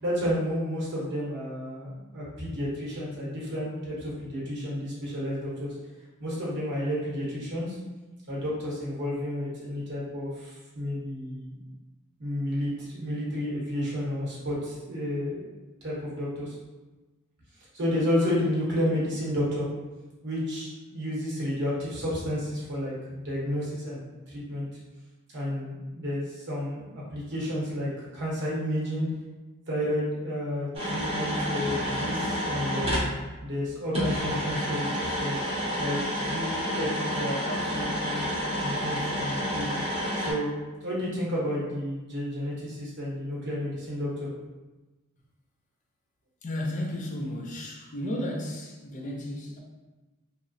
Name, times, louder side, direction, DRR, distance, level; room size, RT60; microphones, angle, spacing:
voice 1, 0.0-5.7 6.2-7.8 8.3-11.6 12.2-15.5 15.8-16.5 17.7-19.7 20.2-24.0 24.3-24.7 25.3-29.1 29.7-33.0 33.4-35.4 35.8-39.8 40.2-44.3, equal, 50° right, -6 dB, 0.9 m, -31 dB
sound 1, 30.7-33.1 33.9-40.3, equal, 25° right, 0.7 m, -29 dB
voice 2, 46.4-49.6, left 1 dB, 35° left, 0 dB, 0.4 m, -33 dB
2.9 x 2.0 x 2.5 m, 1.1 s
head